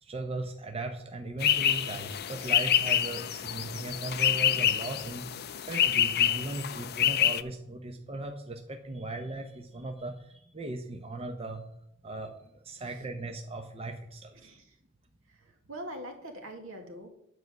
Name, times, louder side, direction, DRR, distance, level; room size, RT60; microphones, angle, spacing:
voice 1, 0.0-5.4 5.7-11.6 12.0-14.3, right 2 dB, 30° right, 4 dB, 0.8 m, -38 dB
sound 1, 1.4-7.4, left 10 dB, 50° left, 0.5 m, -27 dB
voice 2, 12.8-13.1 14.3-14.8 15.3-17.1, right 1 dB, 70° right, 3 dB, 2.0 m, -44 dB
9.8 x 4.7 x 7.9 m, 0.74 s
head